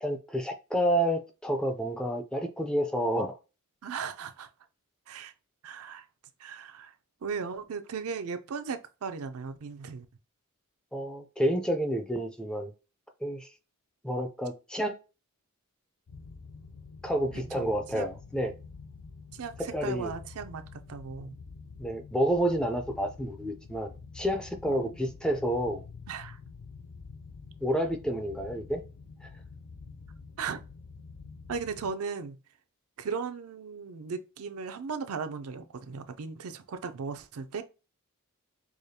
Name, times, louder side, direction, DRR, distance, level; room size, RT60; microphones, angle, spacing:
voice 1, 0.0-3.4 10.9-12.7 13.2-13.5 14.0-15.0 17.0-18.5 19.6-20.1 21.8-25.8 27.6-28.8 29.2-29.3, equal, 5° left, 0.4 m, -29 dB
voice 2, 3.8-4.5 5.1-5.3 5.6-6.1 6.4-6.9 7.2-10.1 17.4-18.1 19.3-21.4 24.6-24.8 26.1-26.4 30.4-30.6 31.5-32.4 33.0-37.6, right 5 dB, 70° right, 0.5 m, -37 dB
sound 1, 16.1-31.9, left 4 dB, 85° left, 0.5 m, -47 dB
4.9 x 2.3 x 2.7 m
head